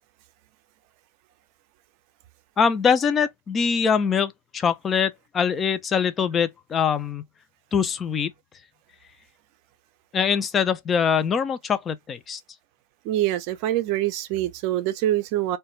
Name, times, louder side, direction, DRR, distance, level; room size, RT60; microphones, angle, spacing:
voice 1, 2.6-7.2 7.7-8.3 10.1-12.4, left 6 dB, 20° left, 0.4 m, -23 dB
voice 2, 13.0-15.6, right 13 dB, 45° right, 0.5 m, -25 dB
2.3 x 2.2 x 3.1 m
hypercardioid pair, 110°, 0 cm